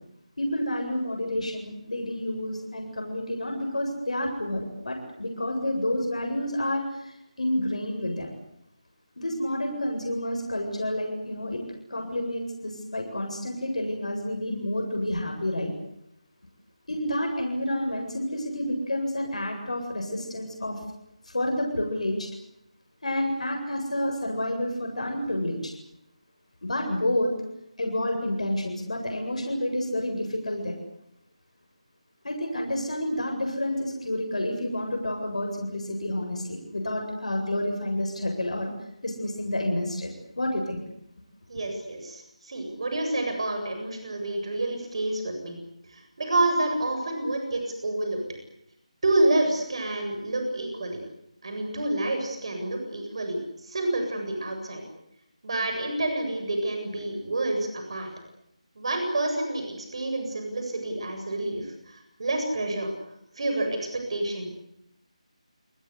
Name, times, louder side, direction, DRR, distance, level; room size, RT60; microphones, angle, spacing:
voice 1, 0.4-8.3 9.2-11.6 11.9-15.7 16.9-20.8 21.2-22.3 23.0-25.6 26.6-27.3 27.8-30.8 32.2-38.7 39.0-40.8 41.5-41.6, left 1 dB, 70° left, 2 dB, 7.9 m, -29 dB
voice 2, 41.5-45.6 45.9-48.2 49.0-51.0 51.4-54.8 55.4-58.1 58.7-62.9 63.3-64.5, right 2 dB, 50° right, 4 dB, 8.0 m, -28 dB
29.5 x 20.0 x 8.4 m, 0.79 s
figure-of-eight pair, 160°, 4 cm